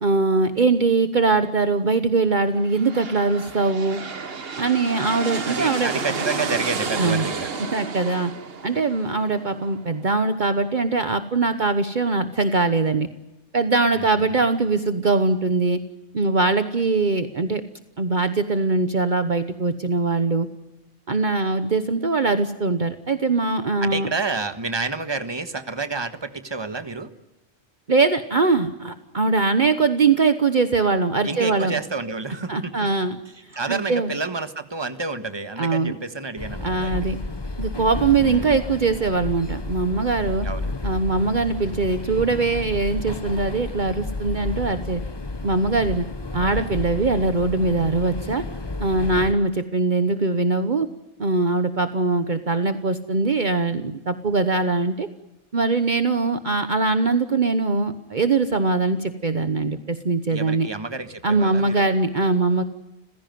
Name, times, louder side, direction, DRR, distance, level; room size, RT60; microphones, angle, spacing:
voice 1, 0.0-4.0 4.6-5.9 7.0-7.2 7.7-8.3 8.6-13.1 13.5-15.8 16.1-17.6 18.0-20.5 21.1-24.1 27.9-31.7 32.5-33.2 33.7-34.1 35.6-35.9 36.6-37.2 37.6-40.5 40.8-45.0 45.4-46.0 46.3-48.4 48.8-50.9 51.2-55.1 55.5-60.7 61.2-62.6, right 3 dB, 45° right, 10 dB, 1.2 m, -22 dB
sound 1, 2.6-10.2, right 4 dB, 60° right, 1.6 m, -31 dB
voice 2, 5.4-7.5 13.9-14.4 23.8-27.1 31.2-32.9 33.3-37.1 38.2-38.6 40.4-40.7 46.4-46.7 60.3-61.9, right 4 dB, 25° right, 10 dB, 1.5 m, -29 dB
sound 2, 36.4-49.3, left 2 dB, 25° left, 1.0 m, -31 dB
30.0 x 16.0 x 9.3 m, 0.97 s
omnidirectional pair, 1.1 m